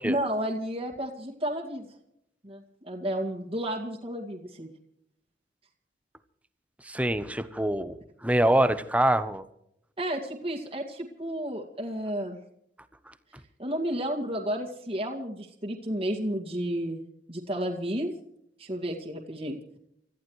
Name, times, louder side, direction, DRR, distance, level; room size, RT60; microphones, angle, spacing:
voice 1, 0.0-1.9 2.4-4.7 10.0-12.4 13.6-17.0 17.3-18.1 18.6-19.6, equal, 35° right, 0 dB, 2.1 m, -32 dB
voice 2, 6.8-8.0 8.2-9.4, right 1 dB, 10° right, 12 dB, 0.9 m, -24 dB
29.5 x 14.5 x 3.2 m, 0.76 s
head